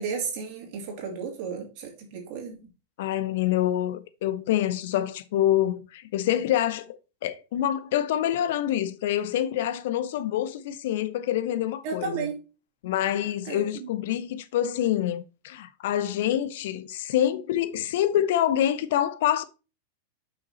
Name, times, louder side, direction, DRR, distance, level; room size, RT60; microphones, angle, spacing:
voice 1, 0.0-2.7 11.8-12.4 13.4-13.9, right 6 dB, 45° right, 2.6 m, -33 dB
voice 2, 3.0-7.0 7.2-12.3 12.8-19.4, left 11 dB, 55° left, 0.6 m, -26 dB
6.0 x 5.7 x 4.2 m
figure-of-eight pair, 90°, 0 cm